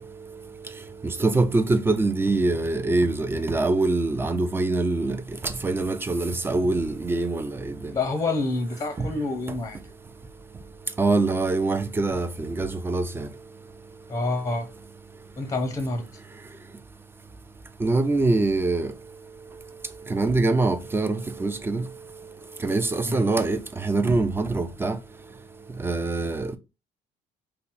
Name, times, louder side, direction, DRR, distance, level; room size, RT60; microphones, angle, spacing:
voice 1, 1.2-5.2 5.6-7.5 11.0-13.3 17.8-18.9 20.1-21.8 22.6-23.6 23.8-25.0 25.8-26.6, right 3 dB, 15° right, 0.4 m, -24 dB
voice 2, 7.9-9.8 14.1-14.7 15.4-16.1 23.0-23.3, left 2 dB, 20° left, 0.7 m, -27 dB
2.7 x 2.0 x 4.0 m
cardioid pair, 110°, 17 cm